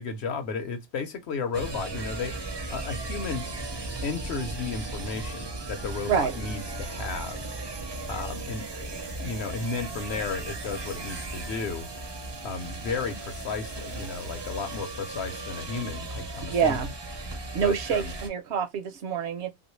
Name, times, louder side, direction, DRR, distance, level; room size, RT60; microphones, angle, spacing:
voice 1, 0.0-2.4 2.7-3.5 4.0-7.4 8.1-11.9 12.4-16.8 17.6-18.1, left 4 dB, 65° left, 0.9 m, -33 dB
sound 1, 1.5-18.3, right 2 dB, 35° right, 0.4 m, -36 dB
voice 2, 16.5-16.9 17.5-19.5, right 7 dB, 70° right, 0.8 m, -26 dB
3.1 x 2.5 x 3.0 m
omnidirectional pair, 1.3 m